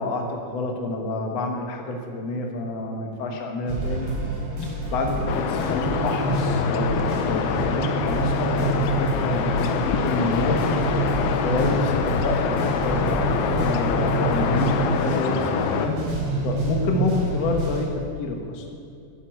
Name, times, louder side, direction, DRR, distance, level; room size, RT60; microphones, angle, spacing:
voice 1, 0.0-4.1 4.9-10.8 11.4-16.0 16.4-17.9 18.2-18.6, left 2 dB, 60° left, 2 dB, 1.9 m, -28 dB
sound 1, 3.7-17.8, right 2 dB, 70° right, 6.0 m, -27 dB
sound 2, 5.3-15.9, left 6 dB, 80° left, 1.7 m, -26 dB
11.0 x 9.6 x 8.8 m, 2.5 s
omnidirectional pair, 4.4 m